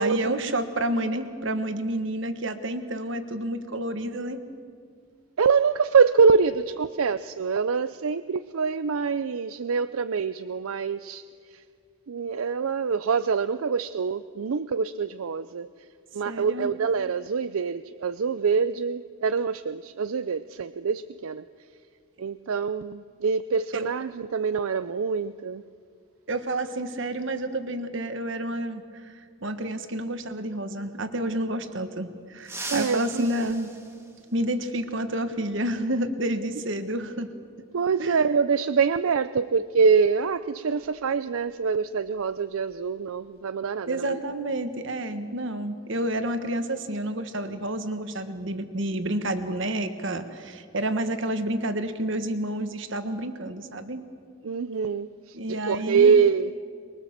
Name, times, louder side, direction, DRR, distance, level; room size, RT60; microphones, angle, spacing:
voice 1, 0.0-4.4 16.2-16.7 23.7-23.9 26.3-33.7 34.3-37.3 38.0-38.2 43.9-54.0 55.3-56.1, right 1 dB, 55° right, 9 dB, 1.4 m, -29 dB
voice 2, 5.4-11.2 11.5-11.6 12.1-15.7 16.1-21.4 22.2-25.6 32.7-33.3 37.7-44.2 54.4-56.5, right 5 dB, 75° right, 13 dB, 0.5 m, -25 dB
sound 1, 32.4-34.8 36.4-36.5 37.8-37.9 39.5-39.7 40.0-40.2 40.7-42.9 43.2-43.4 43.8-44.3, right 2 dB, 10° right, 1.6 m, -41 dB
23.5 x 22.0 x 7.4 m, 2.2 s
head